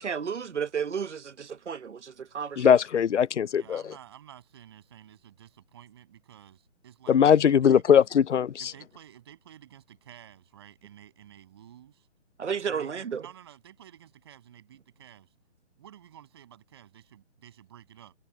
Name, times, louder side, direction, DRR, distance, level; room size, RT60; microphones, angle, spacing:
voice 1, 0.0-2.8 12.4-13.2, right 7 dB, 75° right, 1.1 m, -32 dB
voice 2, 2.6-3.8 7.1-8.7, left 8 dB, 75° left, 0.6 m, -20 dB
voice 3, 3.5-8.0 8.6-12.1 12.7-15.3 15.8-18.2, right 11 dB, 20° right, 7.2 m, -51 dB
hypercardioid pair, 175°, 36 cm